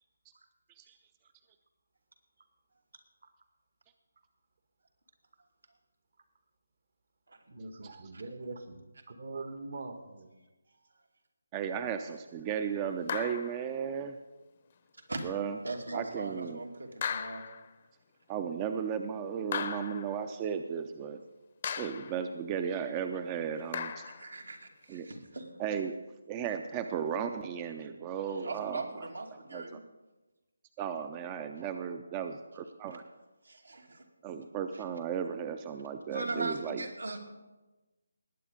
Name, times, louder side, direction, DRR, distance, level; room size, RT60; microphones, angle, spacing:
voice 1, 7.5-10.3, right 3 dB, 55° right, 8 dB, 1.4 m, -43 dB
voice 2, 11.5-14.2 15.2-15.6 15.9-16.6 18.3-21.2 21.8-24.1 24.9-25.1 25.6-26.0 26.3-28.8 29.5-29.8 30.8-33.0 34.2-36.8, right 7 dB, 20° right, 8 dB, 0.5 m, -35 dB
sound 1, 13.1-13.7 15.2-15.3 17.0-17.7 19.5-20.2 21.6-22.2 23.7-24.3, left 7 dB, 40° left, 0.8 m, -37 dB
voice 3, 15.6-17.4 24.0-25.5 28.3-29.8 32.9-33.0 33.4-34.0 34.7-34.8 36.1-37.2, right 2 dB, 85° right, 2 dB, 2.5 m, -40 dB
19.0 x 8.6 x 5.2 m, 1.1 s
figure-of-eight pair, 155°, 0 cm